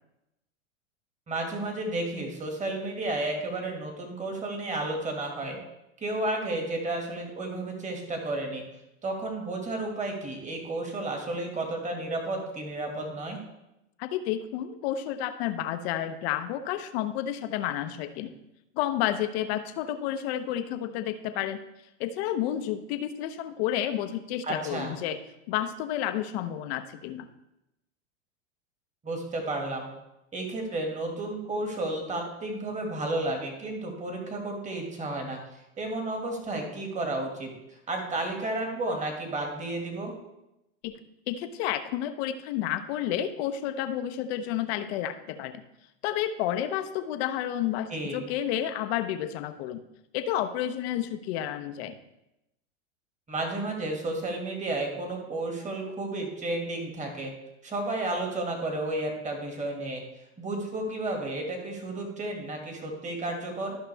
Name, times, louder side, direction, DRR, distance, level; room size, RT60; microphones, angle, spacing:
voice 1, 1.3-5.6 6.0-8.6 9.0-13.4 24.5-25.0 29.0-29.9 30.3-35.4 35.8-40.2 47.9-48.2 53.3-57.3 57.6-60.0 60.4-63.8, right 2 dB, 20° right, 2 dB, 2.0 m, -32 dB
voice 2, 14.0-18.3 18.7-21.6 22.0-25.2 25.5-27.3 40.8-40.9 41.3-45.6 46.0-49.8 50.1-52.0, left 11 dB, 55° left, 10 dB, 0.9 m, -30 dB
13.0 x 5.7 x 3.4 m, 0.89 s
hypercardioid pair, 110°, 38 cm